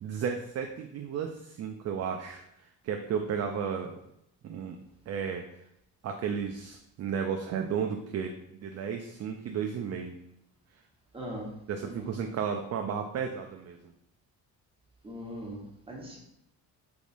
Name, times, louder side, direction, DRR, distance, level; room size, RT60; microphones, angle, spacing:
voice 1, 0.0-4.0 4.4-4.8 5.1-5.4 6.0-10.2 11.7-13.9, right 7 dB, 40° right, 3 dB, 0.4 m, -33 dB
voice 2, 11.1-11.5 11.8-12.1 15.0-16.2, equal, 15° right, -3 dB, 1.2 m, -40 dB
4.0 x 3.5 x 2.5 m, 0.81 s
cardioid pair, 90°, 40 cm